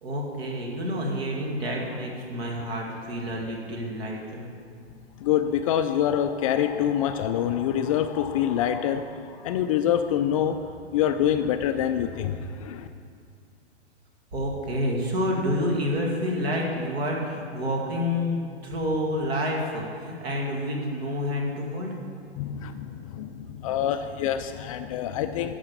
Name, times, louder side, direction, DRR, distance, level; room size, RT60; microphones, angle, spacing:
voice 1, 0.0-4.5 14.3-18.4 18.6-22.0, equal, 60° right, -1 dB, 2.3 m, -28 dB
voice 2, 5.2-10.6 10.9-12.9 22.4-25.5, left 10 dB, 35° left, 8 dB, 0.4 m, -26 dB
11.5 x 5.0 x 6.7 m, 2.3 s
hypercardioid pair, 110°, 34 cm